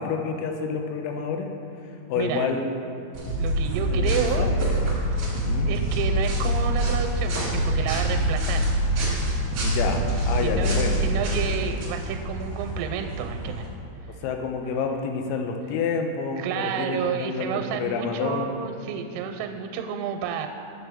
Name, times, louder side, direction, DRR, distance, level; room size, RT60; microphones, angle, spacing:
voice 1, 0.0-1.5 2.1-2.7 3.9-4.1 4.4-4.6 5.5-5.7 9.6-11.0 14.2-18.5, left 5 dB, 85° left, 4 dB, 3.4 m, -28 dB
voice 2, 2.2-2.5 3.4-4.5 5.0-5.2 5.7-8.7 10.4-13.7 16.4-20.5, right 8 dB, 90° right, 6 dB, 3.3 m, -30 dB
sound 1, 3.1-13.7, right 1 dB, 55° right, 1.7 m, -33 dB
sound 2, 3.3-11.6, equal, 65° left, 3.1 m, -25 dB
10.0 x 7.3 x 3.5 m, 2.8 s
omnidirectional pair, 6.0 m